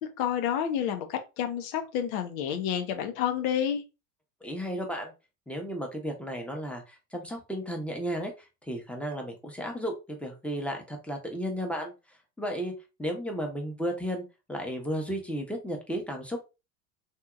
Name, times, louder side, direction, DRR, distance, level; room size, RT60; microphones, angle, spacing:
voice 1, 0.0-3.8, left 9 dB, 70° left, 0.8 m, -29 dB
voice 2, 4.4-5.1 5.5-11.9 12.4-12.7 13.0-16.4, equal, 5° left, 0.9 m, -34 dB
2.8 x 2.7 x 2.3 m
hypercardioid pair, 85°, 44 cm